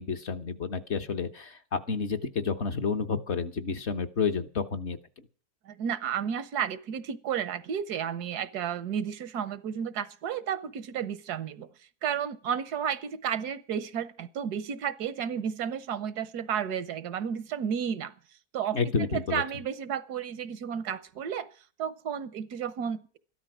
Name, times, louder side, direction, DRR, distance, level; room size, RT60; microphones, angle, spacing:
voice 1, 0.0-5.0 18.7-19.4, left 5 dB, 50° left, 1.3 m, -30 dB
voice 2, 5.6-11.7 12.0-18.1 18.5-18.8 19.1-21.5 21.8-23.2, right 8 dB, 80° right, 1.4 m, -32 dB
13.5 x 12.5 x 6.1 m
omnidirectional pair, 1.7 m